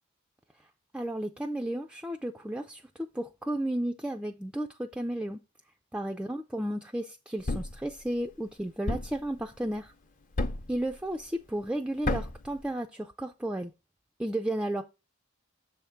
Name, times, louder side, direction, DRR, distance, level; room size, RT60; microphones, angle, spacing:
voice 1, 0.9-5.4 5.9-9.9 10.7-13.7 14.2-14.8, right 1 dB, 5° right, 0.3 m, -33 dB
Thump thud, 7.5-7.8 8.9-9.2 10.4-10.8 12.0-12.5, left 2 dB, 40° left, 0.6 m, -30 dB
7.0 x 3.4 x 5.7 m
head